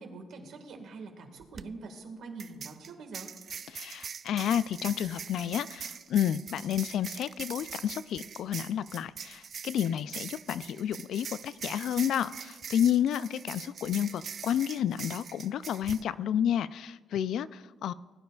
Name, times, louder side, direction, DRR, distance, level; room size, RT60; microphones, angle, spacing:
voice 1, 0.0-3.3, right 3 dB, 70° right, 4 dB, 1.6 m, -44 dB
sound 1, 1.4-1.6 2.4-16.0, right 7 dB, 50° right, 0.4 m, -43 dB
voice 2, 3.7-17.9, left 10 dB, 75° left, 16 dB, 0.3 m, -30 dB
20.5 x 9.4 x 2.3 m, 1.2 s
cardioid pair, 90°, 0 cm